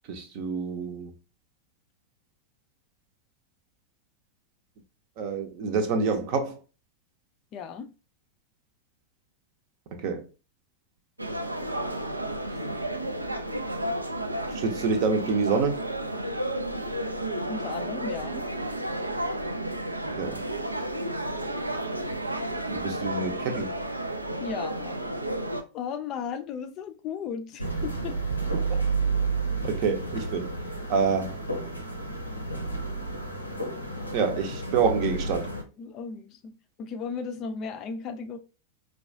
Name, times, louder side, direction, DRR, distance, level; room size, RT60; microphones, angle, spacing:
voice 1, 0.1-1.1 5.2-6.6 10.0-10.3 14.5-15.8 20.1-20.4 22.7-23.7 28.7-28.8 29.6-30.5 30.9-31.4 34.1-35.5, right 5 dB, 45° right, 0.7 m, -27 dB
voice 2, 7.5-7.9 12.5-12.6 17.5-18.5 24.4-25.0 25.7-28.2 35.8-38.4, left 6 dB, 35° left, 0.4 m, -36 dB
sound 1, 11.2-25.6, right 1 dB, 85° right, 0.4 m, -32 dB
sound 2, 27.6-35.6, right 3 dB, 90° left, 0.7 m, -31 dB
4.5 x 2.3 x 2.6 m
figure-of-eight pair, 90°, 0 cm